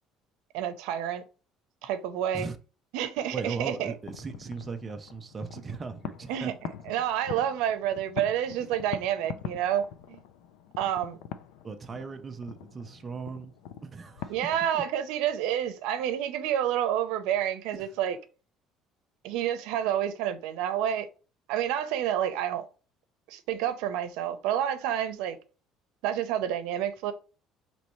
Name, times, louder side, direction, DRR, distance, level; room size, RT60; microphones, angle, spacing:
voice 1, 0.5-1.2 1.8-2.5 2.9-3.9 6.3-6.5 6.9-10.2 10.8-11.2 14.3-18.2 19.2-21.1 21.5-22.7 23.3-25.4 26.0-27.1, right 10 dB, 90° right, 0.6 m, -29 dB
sound 1, 3.2-14.7, left 9 dB, 90° left, 0.4 m, -44 dB
voice 2, 3.3-6.5 8.6-8.7 11.6-13.5 13.8-14.4 14.7-14.8 17.8-17.9, right 4 dB, 20° right, 0.4 m, -37 dB
5.4 x 3.0 x 3.0 m
cardioid pair, 170°, 0 cm